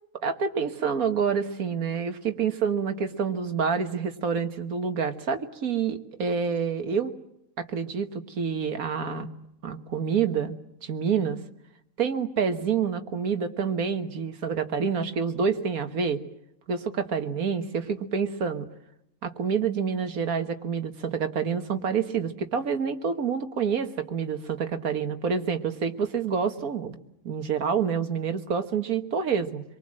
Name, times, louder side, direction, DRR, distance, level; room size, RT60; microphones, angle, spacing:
voice 1, 0.1-7.1 7.6-9.3 9.6-11.4 12.0-16.2 16.7-18.7 19.2-27.0 27.3-29.6, right 6 dB, 70° right, 8 dB, 1.8 m, -27 dB
26.5 x 23.0 x 7.6 m, 0.80 s
omnidirectional pair, 1.6 m